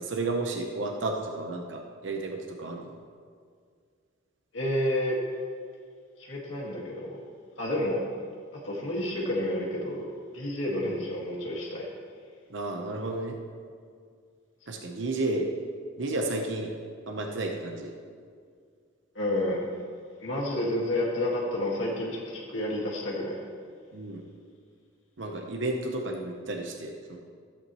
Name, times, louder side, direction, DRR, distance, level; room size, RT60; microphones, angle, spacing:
voice 1, 0.0-2.9 10.8-11.0 12.5-13.4 14.7-15.5 16.0-16.7 17.1-17.9 23.9-24.2 25.2-27.2, right 2 dB, 65° right, 2 dB, 0.9 m, -32 dB
voice 2, 4.5-5.2 6.2-7.1 7.6-8.0 8.5-10.1 10.3-11.9 19.1-19.7 20.2-23.4, left 1 dB, 70° left, -4 dB, 2.0 m, -30 dB
14.5 x 8.5 x 3.1 m, 2.1 s
head